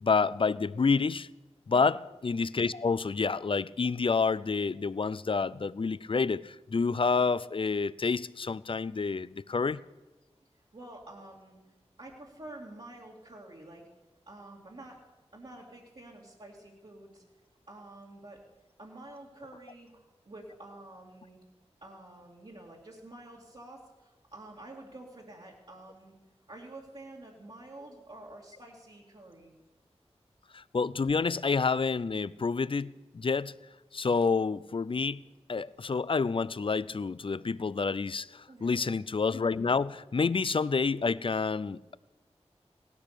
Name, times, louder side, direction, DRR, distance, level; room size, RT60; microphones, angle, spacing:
voice 1, 0.0-1.3 1.7-9.8 30.5-33.5 33.9-35.2 35.5-42.0, left 4 dB, 50° left, 0.5 m, -28 dB
voice 2, 1.7-2.0 10.7-13.9 14.3-15.0 15.3-17.2 17.7-18.4 18.8-21.4 21.8-26.1 26.5-29.5 38.5-39.0, right 2 dB, 55° right, 2.4 m, -49 dB
17.0 x 12.0 x 6.7 m
wide cardioid pair, 60°, 11 cm